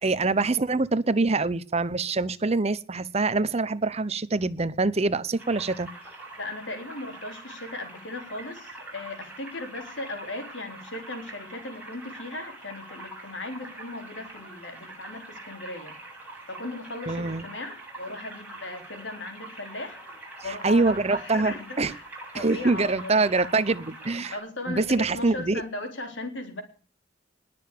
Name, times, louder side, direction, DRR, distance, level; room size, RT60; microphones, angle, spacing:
voice 1, 0.0-5.9 17.1-17.5 20.4-21.9 22.3-24.4 24.7-25.6, right 3 dB, 35° right, 0.8 m, -25 dB
sound 1, 5.4-24.4, right 2 dB, 10° right, 7.9 m, -44 dB
voice 2, 6.4-16.0 16.5-20.0 20.4-22.0 22.3-23.6 24.3-26.6, left 2 dB, 75° left, 3.9 m, -37 dB
20.5 x 6.9 x 8.5 m
head